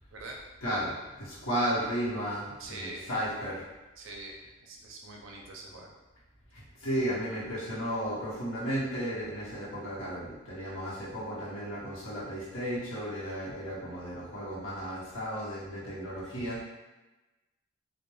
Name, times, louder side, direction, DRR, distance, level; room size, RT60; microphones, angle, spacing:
voice 1, 0.6-0.9 1.2-3.6 6.5-16.6, equal, 75° left, -8 dB, 0.9 m, -34 dB
voice 2, 2.6-3.1 4.0-5.9, right 2 dB, 70° right, 0 dB, 0.4 m, -44 dB
2.2 x 2.1 x 3.0 m, 1.1 s
head